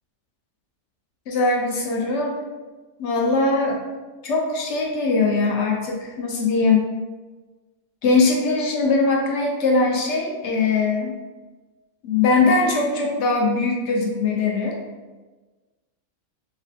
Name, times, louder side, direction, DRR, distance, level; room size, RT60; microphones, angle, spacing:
voice 1, 1.3-2.4 3.0-3.8 4.2-6.9 8.0-11.1 12.0-14.8, left 3 dB, 65° left, -1 dB, 0.7 m, -21 dB
3.3 x 2.2 x 3.7 m, 1.3 s
omnidirectional pair, 1.6 m